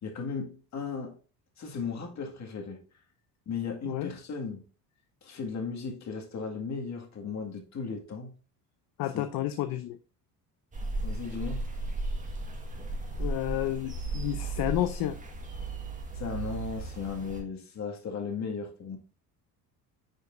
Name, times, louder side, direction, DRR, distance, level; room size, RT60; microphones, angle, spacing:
voice 1, 0.0-1.2 1.6-2.8 3.5-4.6 5.2-8.3 9.1-9.2 11.0-11.7 16.1-19.0, left 5 dB, 40° left, 2.0 m, -36 dB
voice 2, 3.8-4.1 9.0-10.0 13.2-15.2, left 13 dB, 60° left, 0.6 m, -31 dB
sound 1, 10.7-17.4, right 2 dB, 20° right, 1.6 m, -35 dB
9.6 x 5.0 x 2.6 m
cardioid pair, 115°, 40 cm